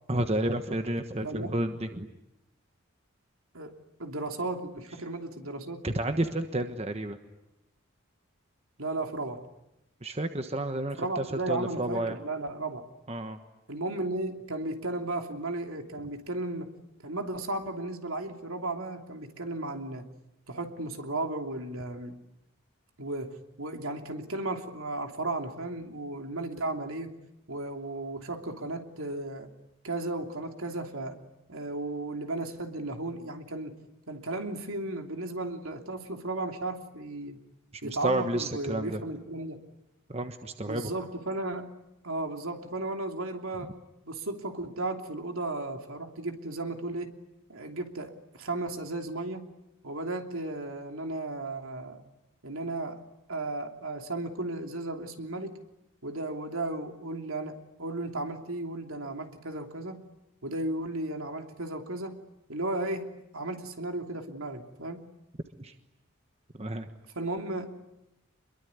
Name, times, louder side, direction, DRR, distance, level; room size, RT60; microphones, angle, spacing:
voice 1, 0.1-2.1 5.8-7.2 10.0-12.2 13.1-13.4 37.8-39.0 40.1-40.9 65.6-65.7 66.6-66.9, right 1 dB, 30° right, 7 dB, 1.3 m, -31 dB
voice 2, 3.5-5.8 8.8-9.4 11.0-12.8 13.7-16.7 17.0-20.1 20.5-22.2 23.0-27.1 27.5-29.5 29.8-31.2 31.5-33.7 34.1-37.4 37.8-39.6 40.6-41.7 42.0-43.7 44.0-47.1 47.5-49.5 49.8-52.0 52.4-53.0 53.3-55.6 56.0-60.0 60.4-62.2 62.5-63.1 63.3-65.0 67.1-67.7, right 2 dB, 75° right, 4 dB, 3.1 m, -35 dB
26.5 x 22.5 x 9.7 m, 0.92 s
head